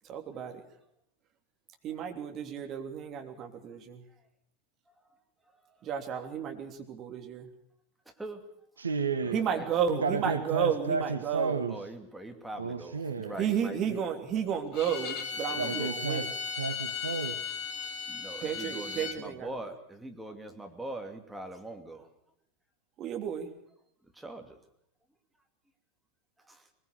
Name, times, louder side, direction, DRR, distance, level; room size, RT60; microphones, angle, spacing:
voice 1, 0.1-0.5 1.8-4.0 5.8-7.5 9.3-11.6 13.4-16.3 18.4-19.6 23.0-23.5, right 8 dB, 30° right, 4 dB, 3.1 m, -32 dB
voice 2, 8.8-9.4 9.9-11.8 12.6-13.4 15.6-16.3 16.6-17.4, right 5 dB, 75° right, 10 dB, 1.3 m, -32 dB
voice 3, 11.7-14.0 15.5-15.9 18.1-22.1 24.2-24.6 26.5-26.6, right 1 dB, 5° right, 3 dB, 2.6 m, -42 dB
Bowed string instrument, 14.7-19.2, left 6 dB, 40° left, 2.5 m, -36 dB
22.0 x 21.0 x 6.8 m, 0.73 s
figure-of-eight pair, 90°, 0 cm